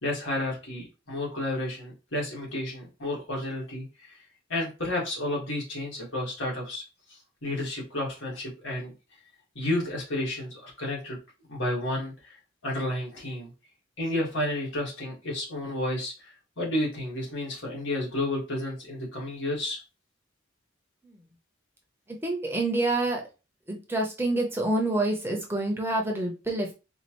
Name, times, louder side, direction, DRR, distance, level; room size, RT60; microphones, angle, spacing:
voice 1, 0.0-4.2 4.5-6.8 7.1-8.9 9.6-11.2 11.5-13.5 14.0-19.8, left 1 dB, 85° left, -2 dB, 1.7 m, -31 dB
voice 2, 22.1-23.2 23.7-26.7, right 2 dB, 10° right, 1 dB, 0.6 m, -27 dB
4.3 x 2.4 x 3.0 m, 0.30 s
head